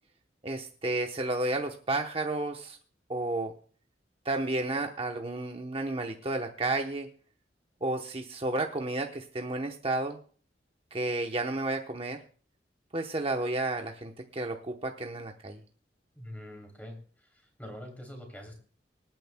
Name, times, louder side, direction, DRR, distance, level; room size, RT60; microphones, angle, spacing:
voice 1, 0.4-2.8 3.1-3.5 4.2-7.1 7.8-10.2 10.9-12.2 12.9-15.6, right 2 dB, 30° right, 3 dB, 0.9 m, -32 dB
voice 2, 16.1-18.5, left 1 dB, 10° left, 2 dB, 3.0 m, -45 dB
25.5 x 9.0 x 2.2 m, 0.43 s
head